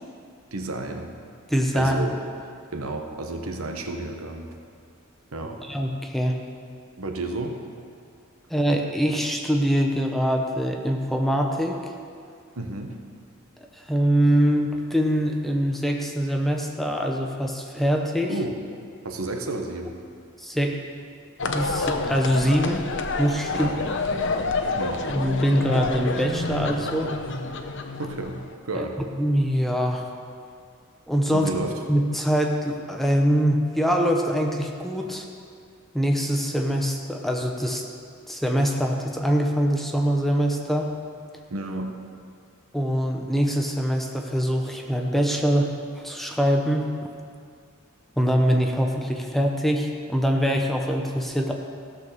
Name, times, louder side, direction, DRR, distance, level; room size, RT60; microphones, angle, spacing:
voice 1, 0.5-1.1 1.7-2.2 2.4-4.5 5.3-5.6 7.0-7.6 12.6-13.0 18.3-18.5 19.0-20.0 23.5-23.8 24.8-25.0 28.0-28.4 28.6-29.0 31.3-31.7 41.5-42.0, right 2 dB, 75° right, 4 dB, 1.2 m, -31 dB
voice 2, 1.5-2.1 5.7-6.4 8.5-11.9 13.8-18.3 20.4-20.8 21.5-22.9 23.2-23.7 25.1-27.1 28.7-28.8 29.2-30.1 31.1-31.5 31.9-35.3 35.9-37.8 38.3-40.9 42.7-45.7 46.0-46.9 48.2-51.5, equal, ahead, 1 dB, 0.8 m, -23 dB
sound 1, 21.4-28.5, left 3 dB, 60° left, 0.8 m, -28 dB
15.0 x 6.5 x 6.8 m, 2.3 s
head